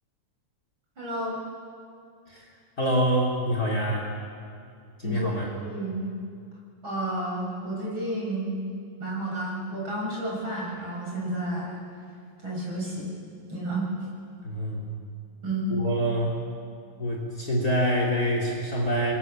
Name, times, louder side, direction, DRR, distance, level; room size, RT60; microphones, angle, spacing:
voice 1, 1.0-1.4 5.0-6.1 6.8-8.6 9.0-11.8 12.4-13.1 13.5-13.9 15.4-15.7, right 1 dB, 40° right, -4 dB, 7.7 m, -31 dB
voice 2, 2.8-4.1 5.0-5.5 14.4-14.9 15.7-16.4 17.0-19.1, equal, 30° left, 0 dB, 3.5 m, -26 dB
28.0 x 22.0 x 7.5 m, 2.3 s
omnidirectional pair, 3.3 m